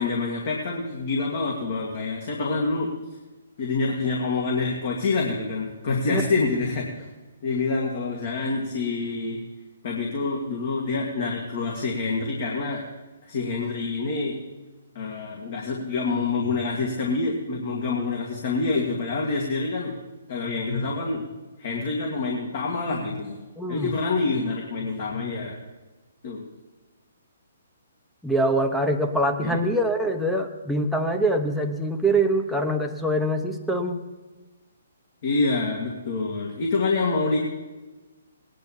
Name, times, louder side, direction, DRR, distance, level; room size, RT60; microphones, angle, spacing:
voice 1, 0.0-2.9 3.6-7.1 7.4-9.4 9.8-12.8 13.2-14.4 14.9-20.0 20.3-21.3 21.6-23.4 23.7-25.6 26.2-26.4 29.4-29.6 35.2-37.4, left 3 dB, 50° left, -1 dB, 2.3 m, -27 dB
voice 2, 23.6-23.9 28.2-34.0, right 1 dB, ahead, 3 dB, 1.1 m, -24 dB
19.0 x 10.0 x 4.5 m, 1.2 s
hypercardioid pair, 140°, 0 cm